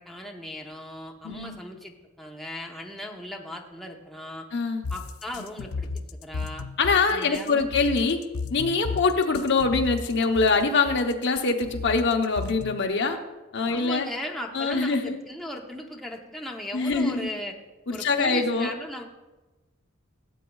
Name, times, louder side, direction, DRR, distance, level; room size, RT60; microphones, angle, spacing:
voice 1, 0.0-4.5 4.9-6.6 7.1-7.6 13.7-17.6 17.9-19.0, left 1 dB, ahead, 0 dB, 0.8 m, -37 dB
voice 2, 1.2-1.6 4.5-4.8 6.8-8.2 8.5-13.2 13.5-14.1 14.5-15.2 16.7-17.3 17.9-18.7, left 4 dB, 55° left, 5 dB, 0.8 m, -24 dB
sound 1, 4.8-12.9, left 4 dB, 80° left, 0.5 m, -34 dB
17.0 x 8.0 x 2.3 m, 1.1 s
head